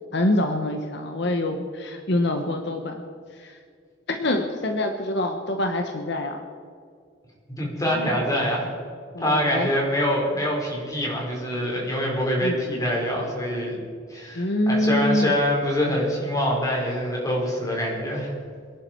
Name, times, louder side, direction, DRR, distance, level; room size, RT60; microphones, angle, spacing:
voice 1, 0.1-3.0 3.4-3.5 4.1-6.4 9.1-9.7 12.4-12.6 14.3-15.3, left 1 dB, 65° left, 5 dB, 1.3 m, -25 dB
voice 2, 7.5-8.6 9.2-13.8 14.1-18.3, equal, 20° left, -3 dB, 5.0 m, -25 dB
26.0 x 11.0 x 4.7 m, 2.2 s
head